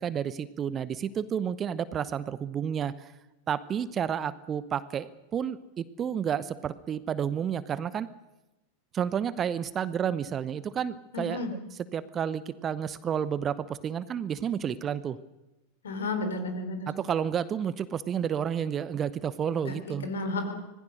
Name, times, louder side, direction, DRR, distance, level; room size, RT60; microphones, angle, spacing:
voice 1, 0.0-3.1 3.5-8.1 8.9-11.4 11.9-15.2 16.9-20.1, right 8 dB, 25° right, 17 dB, 0.9 m, -31 dB
voice 2, 11.1-11.6 15.8-16.9 19.6-19.8 20.0-20.5, left 2 dB, 65° left, 8 dB, 3.9 m, -32 dB
25.5 x 19.5 x 6.5 m, 0.97 s
figure-of-eight pair, 90°, 0 cm